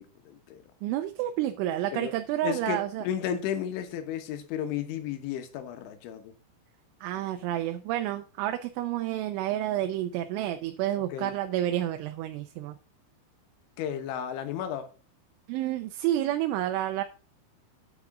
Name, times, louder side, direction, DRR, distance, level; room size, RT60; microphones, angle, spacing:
voice 1, 0.0-0.6 1.9-2.1 2.4-6.3 11.1-11.3 13.8-14.9, left 9 dB, 75° left, 3.5 m, -33 dB
voice 2, 0.8-3.1 7.0-12.8 15.5-17.0, right 13 dB, 80° right, 3.1 m, -30 dB
9.1 x 8.6 x 3.7 m
omnidirectional pair, 5.6 m